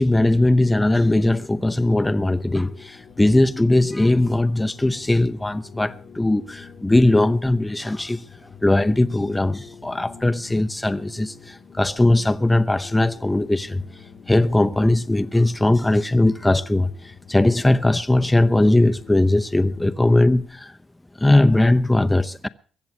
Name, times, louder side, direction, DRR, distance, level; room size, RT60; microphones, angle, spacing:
voice 1, 0.0-8.2 8.6-13.8 14.3-16.9 17.3-20.7 21.2-22.5, left 1 dB, 10° left, 0.8 m, -19 dB
sound 1, 0.6-19.9, left 6 dB, 55° left, 1.2 m, -46 dB
22.0 x 7.9 x 6.0 m
cardioid pair, 90°, 0 cm